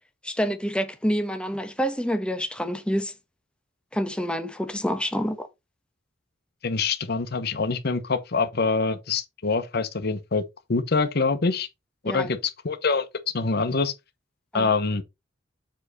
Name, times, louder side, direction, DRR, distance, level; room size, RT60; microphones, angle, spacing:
voice 1, 0.2-3.1 3.9-5.5 12.0-12.3 14.5-14.7, equal, 5° left, 1.0 m, -27 dB
voice 2, 6.6-10.4 10.7-11.7 12.0-13.1 13.3-13.9 14.5-15.0, left 4 dB, 55° left, 0.8 m, -25 dB
7.4 x 4.5 x 4.0 m
head